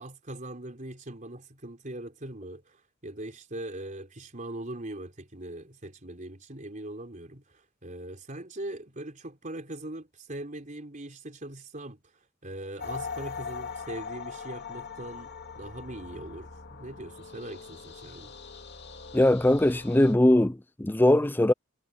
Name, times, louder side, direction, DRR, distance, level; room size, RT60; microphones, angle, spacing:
voice 1, 0.0-12.0 12.4-18.4, right 1 dB, 35° right, 4.4 m, -41 dB
sound 1, 12.8-20.1, left 5 dB, 55° left, 2.6 m, -41 dB
voice 2, 19.1-21.5, left 1 dB, 10° left, 0.5 m, -21 dB
head